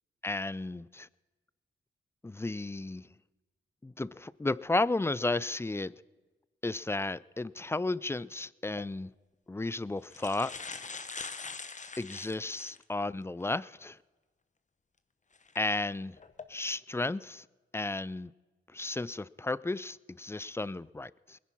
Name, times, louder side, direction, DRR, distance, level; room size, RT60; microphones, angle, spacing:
voice 1, 0.2-1.1 2.2-3.1 3.8-6.0 6.6-9.1 9.5-10.6 12.0-14.0 15.6-16.2 16.5-17.4 17.7-18.3 18.7-21.4, left 2 dB, 10° left, 0.4 m, -33 dB
sound 1, 8.7-8.9 9.7-9.8 10.0-12.8 13.4-13.5 15.3-15.6 16.2-16.4, left 4 dB, 35° left, 1.0 m, -42 dB
21.0 x 10.5 x 5.6 m
cardioid pair, 65°, 21 cm